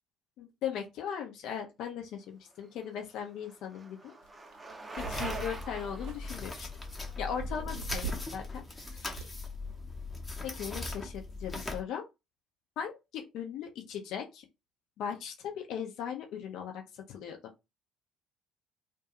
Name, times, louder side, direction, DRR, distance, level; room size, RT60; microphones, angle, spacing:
voice 1, 0.4-4.1 5.0-6.7 7.2-8.4 8.9-9.3 10.4-12.0 12.8-14.4 15.0-17.4, left 8 dB, 60° left, 0.6 m, -38 dB
Bicycle, 2.6-8.6, right 3 dB, 20° right, 0.6 m, -44 dB
sound 1, 4.2-4.3 4.5-6.9 7.4-8.5 8.7-9.2, right 5 dB, 65° right, 0.6 m, -41 dB
sound 2, 5.0-11.8, left 3 dB, 20° left, 0.9 m, -40 dB
2.4 x 2.2 x 2.8 m
hypercardioid pair, 55°, 0 cm